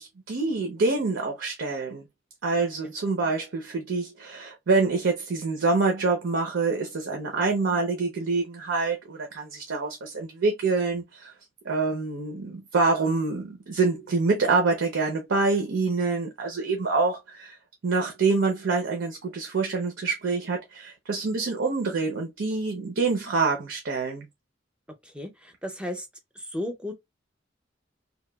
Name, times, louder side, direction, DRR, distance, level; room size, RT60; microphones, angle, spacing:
voice 1, 0.0-2.0 2.4-11.3 11.6-17.6 17.8-24.3, right 3 dB, 80° right, 0.6 m, -26 dB
voice 2, 25.6-26.0 26.5-26.9, left 1 dB, 5° right, 0.4 m, -32 dB
2.9 x 2.2 x 2.2 m
head